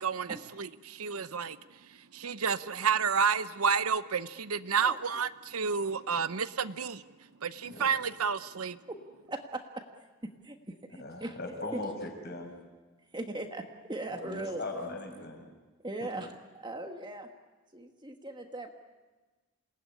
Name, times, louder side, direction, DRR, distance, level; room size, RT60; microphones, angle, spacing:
voice 1, 0.0-1.6 2.1-7.0 7.4-8.8, right 6 dB, 80° right, 14 dB, 0.8 m, -30 dB
voice 2, 9.3-9.8 10.2-11.4 11.7-11.8 13.1-14.6 15.8-17.3 17.7-18.7, right 2 dB, 20° right, 4 dB, 1.5 m, -39 dB
voice 3, 11.0-12.5 14.1-15.5 16.0-16.1, left 2 dB, 45° left, 2 dB, 5.9 m, -39 dB
28.0 x 19.0 x 9.9 m, 1.3 s
head